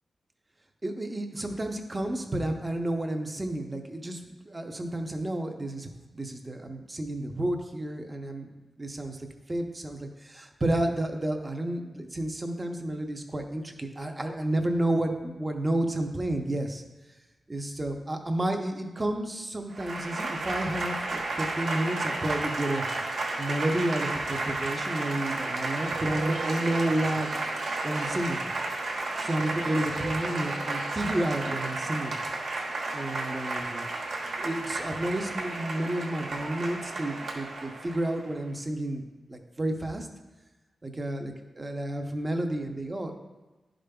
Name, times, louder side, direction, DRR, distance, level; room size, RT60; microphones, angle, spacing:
voice 1, 0.8-8.5 8.8-16.8 17.5-22.8 23.4-27.3 27.8-28.4 29.2-32.2 32.9-33.9 34.4-40.1 40.8-43.1, right 1 dB, 20° right, 4 dB, 0.6 m, -31 dB
Applause / Crowd, 19.7-38.3, right 2 dB, 80° right, 1.3 m, -32 dB
11.5 x 5.0 x 2.3 m, 1.2 s
wide cardioid pair, 165°, 0 cm